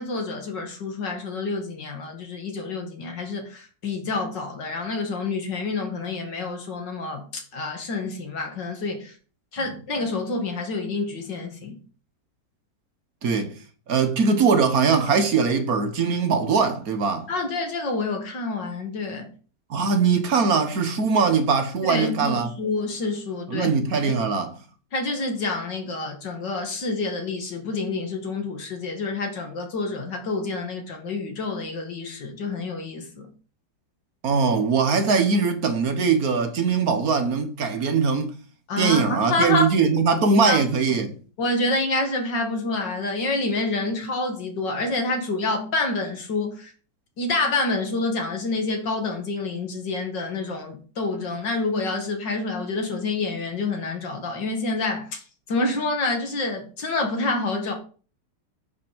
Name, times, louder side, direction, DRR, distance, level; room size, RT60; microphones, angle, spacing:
voice 1, 0.0-9.1 9.5-11.8 17.3-19.3 21.8-23.7 24.1-24.2 24.9-33.3 38.7-39.7 40.5-40.6 41.4-46.7 47.2-55.2 55.5-57.7, left 3 dB, 85° left, 2.7 m, -28 dB
voice 2, 13.2-13.5 13.9-17.3 19.7-22.5 23.5-24.5 34.2-38.3 38.8-41.2, right 5 dB, 55° right, 1.8 m, -21 dB
9.1 x 5.9 x 5.2 m
omnidirectional pair, 1.9 m